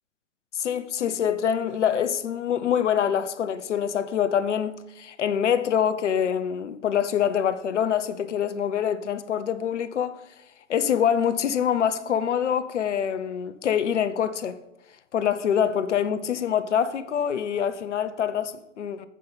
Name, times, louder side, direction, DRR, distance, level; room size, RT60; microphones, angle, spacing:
voice 1, 0.6-10.2 10.7-14.6 15.1-19.1, left 8 dB, 65° left, 0.7 m, -25 dB
7.6 x 5.7 x 5.4 m
figure-of-eight pair, 115°, 39 cm